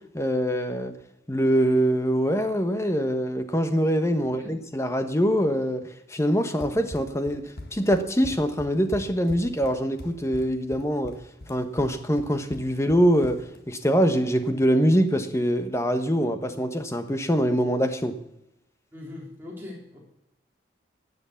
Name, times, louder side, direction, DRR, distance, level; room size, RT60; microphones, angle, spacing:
voice 1, 0.1-0.9 1.3-11.2 11.5-18.2, equal, 15° left, 8 dB, 1.1 m, -24 dB
voice 2, 4.2-4.5 18.9-20.0, left 2 dB, 10° right, -3 dB, 4.1 m, -41 dB
Run, 6.6-13.6, left 1 dB, 55° left, 1.6 m, -41 dB
13.0 x 8.2 x 8.2 m, 0.87 s
head